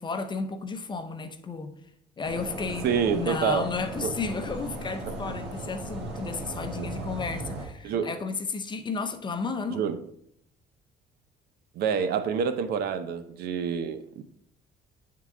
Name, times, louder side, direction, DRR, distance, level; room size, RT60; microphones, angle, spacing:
voice 1, 0.0-1.7 2.2-9.8, left 4 dB, 25° left, 0.7 m, -33 dB
sound 1, 2.2-7.7, right 2 dB, 85° right, 1.3 m, -37 dB
voice 2, 2.8-3.7 4.0-4.1 5.0-5.2 6.8-6.9 7.8-8.1 9.7-10.0 11.8-14.2, right 7 dB, 70° right, 0.6 m, -27 dB
9.3 x 3.8 x 3.7 m
cardioid pair, 110°, 17 cm